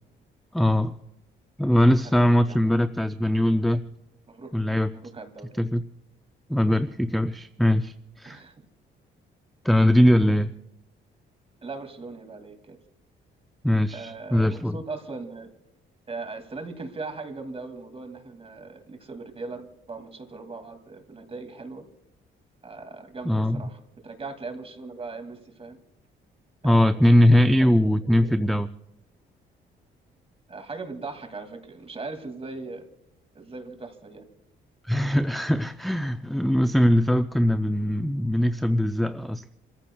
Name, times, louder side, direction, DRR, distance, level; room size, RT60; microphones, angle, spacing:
voice 1, 0.5-0.9 1.6-3.8 4.5-4.9 5.6-5.8 6.5-8.4 9.6-10.5 13.6-14.8 23.3-23.6 26.6-28.7 34.8-39.4, equal, ahead, 9 dB, 0.4 m, -21 dB
voice 2, 2.0-2.8 4.3-4.6 4.9-5.6 8.2-8.7 10.2-10.3 11.6-12.8 13.9-15.5 16.1-21.9 22.6-25.8 26.6-28.4 30.5-32.9 33.3-34.2, right 3 dB, 30° right, 6 dB, 2.3 m, -39 dB
29.0 x 14.5 x 2.3 m, 0.87 s
cardioid pair, 90°, 20 cm